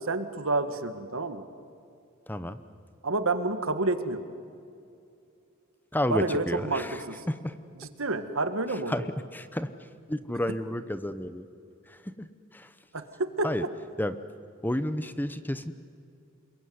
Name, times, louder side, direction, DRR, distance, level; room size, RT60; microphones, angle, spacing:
voice 1, 0.0-1.4 3.0-4.2 6.1-7.2 7.8-8.9 12.9-13.5, right 2 dB, 70° right, 10 dB, 1.7 m, -29 dB
voice 2, 2.3-2.6 5.9-7.6 8.9-9.0 9.3-11.5 11.9-12.7 13.4-13.6 14.0-14.2 14.6-15.7, left 1 dB, 10° left, 12 dB, 0.8 m, -31 dB
27.5 x 22.0 x 9.6 m, 2.6 s
head